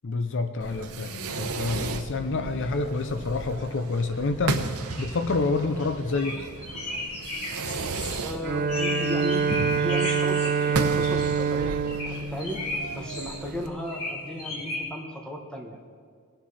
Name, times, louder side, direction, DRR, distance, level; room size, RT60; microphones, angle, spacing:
voice 1, 0.0-6.4, left 3 dB, 55° left, 8 dB, 0.6 m, -28 dB
Fireworks, 0.6-13.7, right 3 dB, 85° right, 0.8 m, -35 dB
sound 1, 4.9-5.0 5.8-5.9 6.1-6.4 6.6-10.8 11.0-11.4 11.9-13.4 13.9-14.8, left 2 dB, 90° left, 3.1 m, -34 dB
voice 2, 8.2-12.6 12.9-15.8, equal, 5° left, 0 dB, 1.3 m, -35 dB
Bowed string instrument, 8.4-13.5, right 5 dB, 40° right, 0.4 m, -26 dB
21.0 x 7.4 x 4.2 m, 2.1 s
head